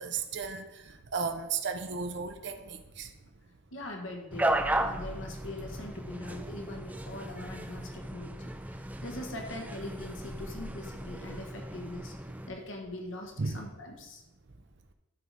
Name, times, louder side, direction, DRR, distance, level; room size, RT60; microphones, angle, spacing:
voice 1, 0.0-3.4 8.9-9.0 12.3-12.4 13.4-13.7, right 5 dB, 65° right, 6 dB, 0.8 m, -35 dB
voice 2, 3.7-14.2, left 1 dB, 85° left, 2 dB, 1.3 m, -42 dB
sound 1, 4.3-12.5, right 1 dB, 10° right, 0.5 m, -35 dB
11.5 x 4.1 x 4.7 m, 0.95 s
head